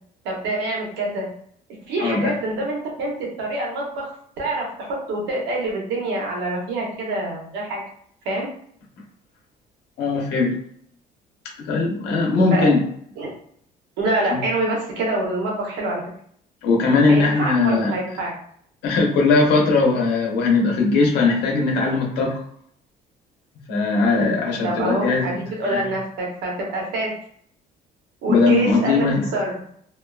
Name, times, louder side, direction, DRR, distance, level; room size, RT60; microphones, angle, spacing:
voice 1, 0.2-1.3 1.9-4.1 4.4-7.8 8.2-8.5 12.5-12.7 13.2-13.3 14.0-16.0 17.1-18.3 24.6-27.1 28.2-29.1 29.3-29.7, right 2 dB, 90° right, -2 dB, 0.9 m, -26 dB
voice 2, 2.0-2.3 10.0-10.6 11.6-12.8 14.3-14.4 16.6-17.9 18.8-22.4 23.7-25.4 25.7-25.8 28.3-29.3, left 3 dB, 80° left, -1 dB, 0.9 m, -19 dB
2.5 x 2.3 x 2.3 m, 0.64 s
cardioid pair, 110°, 17 cm